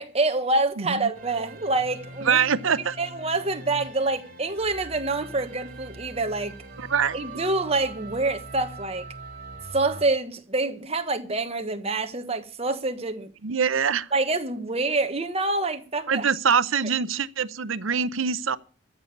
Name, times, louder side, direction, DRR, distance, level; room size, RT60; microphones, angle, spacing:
voice 1, 0.0-2.5 3.0-6.6 7.1-9.1 9.7-13.3 14.1-16.3, right 2 dB, 30° right, 1.2 m, -26 dB
voice 2, 0.8-1.1 2.3-3.0 6.8-7.2 13.4-14.1 16.1-18.6, right 6 dB, 70° right, 0.7 m, -24 dB
sound 1, 1.1-10.1, right 2 dB, 45° right, 3.7 m, -42 dB
14.5 x 6.9 x 8.5 m
head